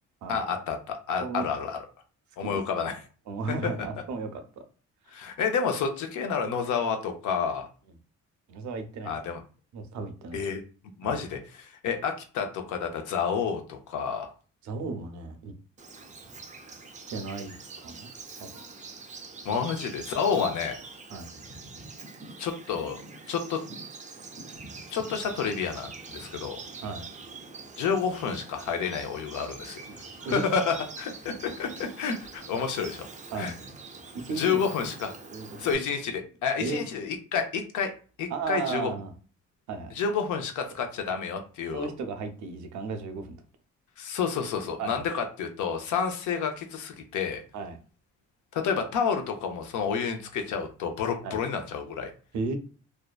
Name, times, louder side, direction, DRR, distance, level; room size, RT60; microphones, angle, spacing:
voice 1, 0.3-1.8 2.4-3.0 5.1-7.7 9.0-9.4 10.3-10.6 11.0-14.3 19.4-20.8 22.4-23.0 23.3-23.6 24.9-26.6 27.8-29.8 30.2-33.1 33.3-33.5 34.3-35.1 35.6-37.9 38.2-38.9 39.9-41.9 44.0-47.4 48.5-52.1, left 6 dB, 75° left, 5 dB, 0.6 m, -29 dB
voice 2, 3.3-4.6 5.1-5.3 8.5-9.1 9.7-10.5 11.0-11.2 14.6-15.5 17.1-18.1 18.4-18.6 20.3-20.5 21.1-21.3 26.8-27.1 29.9-30.0 30.3-30.5 33.3-33.5 34.1-34.6 35.3-35.5 36.6-36.8 38.3-39.1 39.7-39.9 41.7-43.4 44.8-45.0 47.5-47.8 51.2-51.4 52.3-52.6, right 4 dB, 70° right, 7 dB, 0.6 m, -34 dB
Bird vocalization bird call bird song, 15.8-35.7, right 4 dB, 25° right, 0.4 m, -44 dB
2.6 x 2.1 x 2.3 m, 0.38 s
cardioid pair, 90°, 30 cm